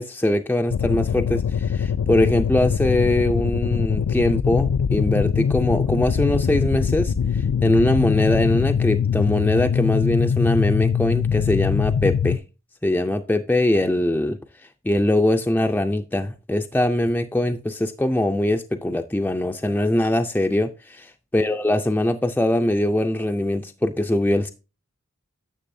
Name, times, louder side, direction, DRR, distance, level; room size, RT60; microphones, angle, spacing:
voice 1, 0.0-12.4 12.8-14.4 14.8-24.5, left 1 dB, 10° left, 0.4 m, -22 dB
sound 1, 0.7-12.4, left 7 dB, 80° left, 0.4 m, -22 dB
9.9 x 6.8 x 2.6 m
head